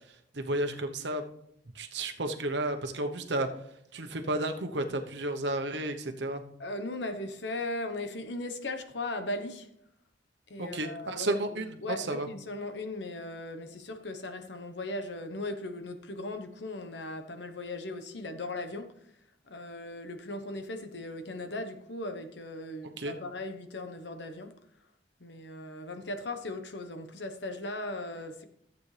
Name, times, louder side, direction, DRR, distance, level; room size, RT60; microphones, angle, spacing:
voice 1, 0.3-1.3 1.7-3.5 3.9-6.4 10.6-12.3 22.8-23.1, right 1 dB, 75° right, 6 dB, 1.0 m, -32 dB
voice 2, 6.6-9.7 10.5-18.9 19.5-24.5 25.2-28.4, left 2 dB, 75° left, 7 dB, 1.2 m, -38 dB
14.5 x 8.1 x 3.4 m, 0.74 s
head